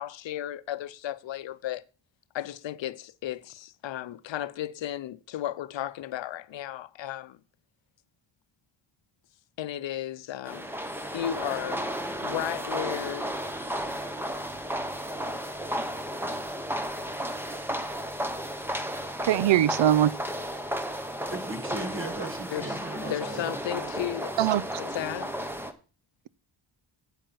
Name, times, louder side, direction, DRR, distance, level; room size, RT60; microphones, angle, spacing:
voice 1, 0.0-1.8 2.3-7.4 9.6-10.7 11.1-11.9 12.2-13.3 22.5-24.4 24.8-25.3, left 12 dB, 75° left, 0.7 m, -34 dB
sound 1, 10.4-25.7, equal, 5° right, 0.9 m, -33 dB
voice 2, 19.2-20.1 24.4-24.6, right 12 dB, 75° right, 0.6 m, -21 dB
voice 3, 21.3-23.6, right 2 dB, 25° right, 1.6 m, -37 dB
9.2 x 8.7 x 4.6 m
wide cardioid pair, 165°, 45 cm